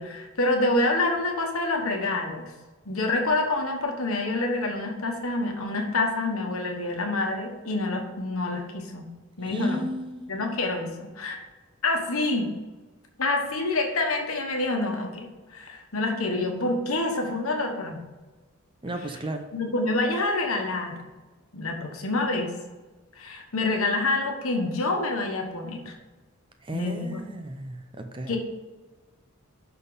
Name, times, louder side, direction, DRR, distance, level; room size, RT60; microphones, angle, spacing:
voice 1, 0.0-2.5 2.8-9.1 9.4-9.8 10.3-11.4 11.8-12.5 13.2-18.0 19.5-21.0 21.5-22.5 23.2-25.9 26.7-27.2 28.3-28.4, left 2 dB, 75° left, 3 dB, 1.3 m, -27 dB
voice 2, 9.4-10.3 18.8-19.5 26.6-28.4, right 1 dB, 25° right, 6 dB, 0.6 m, -33 dB
11.0 x 4.0 x 3.9 m, 1.2 s
head